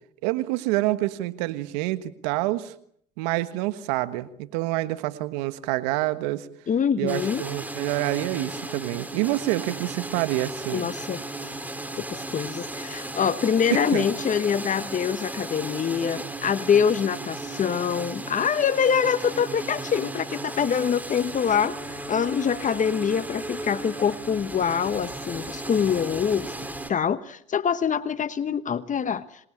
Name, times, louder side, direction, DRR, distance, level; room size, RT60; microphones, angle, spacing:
voice 1, 0.2-2.7 3.2-6.5 7.0-10.9 13.7-14.1, right 17 dB, 80° right, 13 dB, 1.5 m, -27 dB
voice 2, 6.7-7.4 10.7-11.5 12.0-26.5 26.9-29.3, left 7 dB, 40° left, 14 dB, 1.2 m, -25 dB
sound 1, 7.1-26.9, right 2 dB, 10° right, 3.9 m, -35 dB
26.5 x 21.0 x 8.7 m, 0.67 s
supercardioid pair, 80°, 21 cm